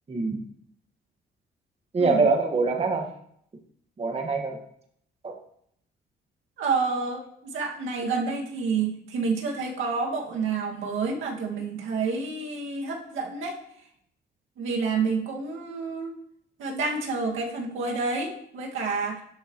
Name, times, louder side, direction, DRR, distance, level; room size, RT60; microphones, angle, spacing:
voice 1, 0.1-0.4 1.9-3.0 4.0-4.6 5.2-5.3, right 4 dB, 30° right, 2 dB, 1.8 m, -24 dB
voice 2, 2.0-2.3 6.6-13.6 14.6-16.1 16.6-19.2, right 4 dB, 80° right, -1 dB, 2.1 m, -29 dB
12.0 x 6.6 x 3.1 m, 0.68 s
cardioid pair, 90°, 20 cm